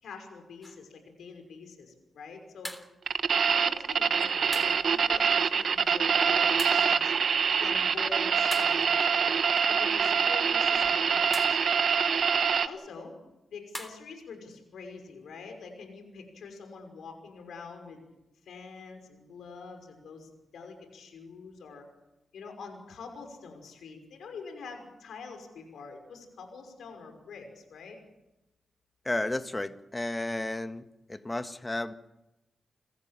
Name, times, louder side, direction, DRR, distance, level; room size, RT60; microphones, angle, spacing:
voice 1, 0.0-2.7 3.6-7.1 7.6-9.3 9.7-11.8 12.6-13.1 13.5-18.0 18.5-21.8 22.3-28.0, left 4 dB, 85° left, 5 dB, 5.8 m, -45 dB
sound 1, 0.6-0.8 2.7-2.9 4.5-4.8 6.6-7.0 8.5-9.0 11.3-11.6 13.7-14.1, equal, 5° left, 3.6 m, -40 dB
sound 2, 3.1-12.7, right 6 dB, 70° right, 1.2 m, -25 dB
voice 2, 29.0-30.8 31.1-31.9, left 2 dB, 20° left, 9 dB, 1.7 m, -32 dB
30.0 x 15.0 x 7.5 m, 0.96 s
cardioid pair, 60°, 0 cm